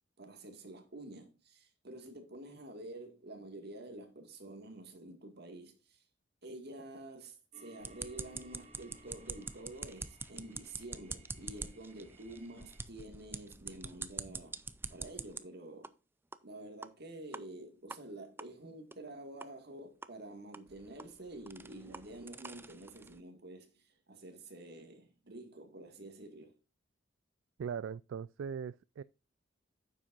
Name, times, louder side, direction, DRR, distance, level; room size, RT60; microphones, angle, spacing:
voice 1, 0.2-6.0 6.4-14.6 14.9-16.0 16.4-26.6, right 1 dB, 55° right, 2.0 m, -49 dB
sound 1, 7.5-12.8, right 2 dB, 35° right, 1.6 m, -61 dB
sound 2, 7.8-15.4 15.8-15.9 16.3-16.4 16.8-16.9 17.3-17.4 17.9-18.0 18.4-18.5 18.9-19.0 19.4-19.5 20.0-20.1 20.5-23.2, right 3 dB, 10° right, 0.4 m, -45 dB
voice 2, 27.6-29.0, right 7 dB, 75° right, 0.3 m, -40 dB
9.7 x 7.4 x 2.5 m
head